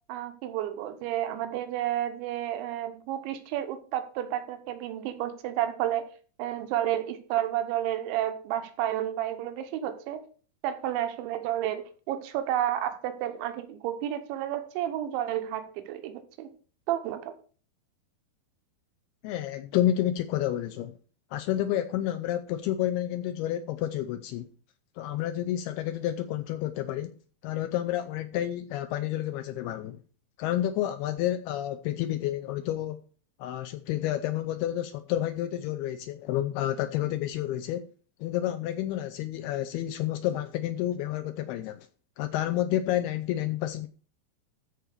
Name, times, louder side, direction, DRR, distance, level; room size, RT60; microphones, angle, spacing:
voice 1, 0.1-6.1 6.4-10.2 10.6-16.5 16.9-17.3, right 12 dB, 90° right, 3.3 m, -31 dB
voice 2, 19.2-20.9 21.3-24.5 25.0-27.1 27.4-30.0 30.4-33.0 33.4-37.9 38.2-41.9 42.2-43.9, left 12 dB, 80° left, 2.3 m, -30 dB
13.5 x 4.6 x 6.6 m
omnidirectional pair, 5.2 m